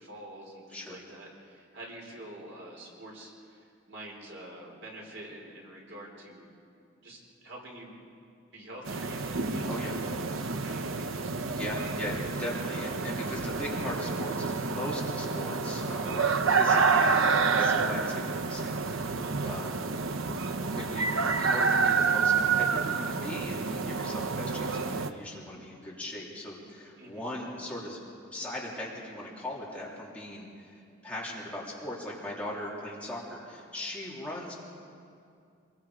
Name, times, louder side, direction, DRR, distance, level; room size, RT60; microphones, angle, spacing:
voice 1, 0.0-6.5 7.0-8.0 8.5-10.2 10.5-11.3 19.2-19.5 27.0-27.3, right 1 dB, 65° right, -2 dB, 4.8 m, -46 dB
sound 1, 8.9-25.1, right 4 dB, 85° right, 0.9 m, -28 dB
voice 2, 9.6-10.0 11.5-19.8 20.6-28.0 28.3-34.5, left 1 dB, 5° left, -5 dB, 3.2 m, -39 dB
26.5 x 21.5 x 5.1 m, 2.4 s
head